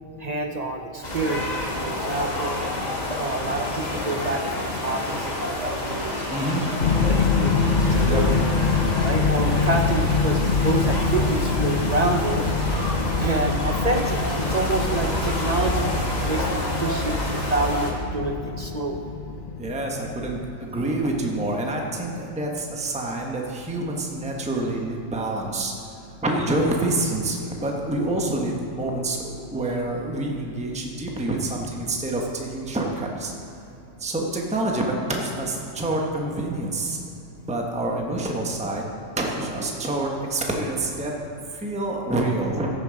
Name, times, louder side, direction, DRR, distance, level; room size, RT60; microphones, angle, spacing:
voice 1, 0.2-1.5 1.8-2.6 3.2-6.2 6.6-6.7 7.1-8.4 9.0-12.8 13.2-15.9 16.2-19.1, right 2 dB, 45° right, 3 dB, 0.5 m, -27 dB
sound 1, 1.0-17.9, left 1 dB, 35° left, 1.4 m, -28 dB
voice 2, 6.3-6.6 8.0-8.2 19.6-25.7 26.2-33.3 34.0-37.0 37.5-38.8 39.2-41.1 41.6-42.7, right 2 dB, 5° right, 0 dB, 1.0 m, -27 dB
sound 2, 6.8-20.8, left 5 dB, 55° left, 0.6 m, -25 dB
15.0 x 6.9 x 5.1 m, 2.8 s
omnidirectional pair, 1.3 m